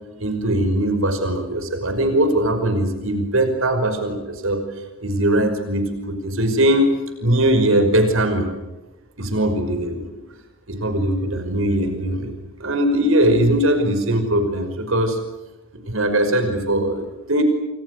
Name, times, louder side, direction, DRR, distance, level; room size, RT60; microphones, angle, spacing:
voice 1, 0.2-4.6 5.0-6.9 7.2-8.5 9.2-10.1 10.7-12.3 12.6-15.2 15.8-17.4, right 1 dB, 70° right, 8 dB, 5.5 m, -20 dB
29.5 x 28.5 x 6.7 m, 1.0 s
head